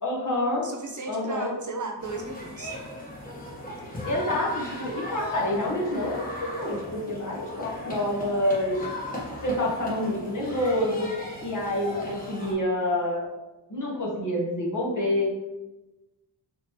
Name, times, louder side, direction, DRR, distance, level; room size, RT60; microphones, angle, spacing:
voice 1, 0.0-0.7 1.1-1.5 4.1-8.8 9.4-11.1 11.4-13.3 13.7-15.3, left 1 dB, 45° left, -4 dB, 1.4 m, -27 dB
voice 2, 0.6-2.8, right 3 dB, 45° right, 2 dB, 0.6 m, -35 dB
Récréation en école primaire (children playing at school), 2.0-12.5, left 1 dB, 20° left, 1.4 m, -37 dB
4.2 x 2.8 x 3.1 m, 1.0 s
cardioid pair, 80°, 43 cm